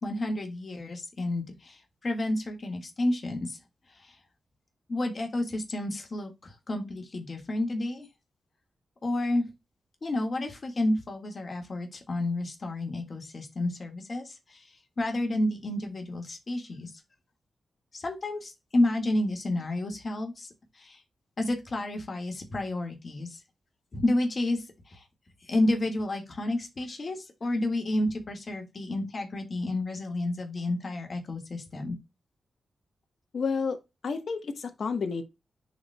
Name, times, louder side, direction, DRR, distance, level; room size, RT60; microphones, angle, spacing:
voice 1, 0.0-3.6 4.0-4.2 4.9-8.1 9.0-9.4 10.0-14.6 15.0-16.9 17.9-21.0 21.4-23.4 23.9-25.0 25.4-32.0, left 1 dB, 45° left, 1.8 m, -30 dB
voice 2, 33.3-33.8 34.0-35.2, left 5 dB, 65° left, 1.1 m, -30 dB
10.0 x 4.3 x 2.2 m
cardioid pair, 90°, 0 cm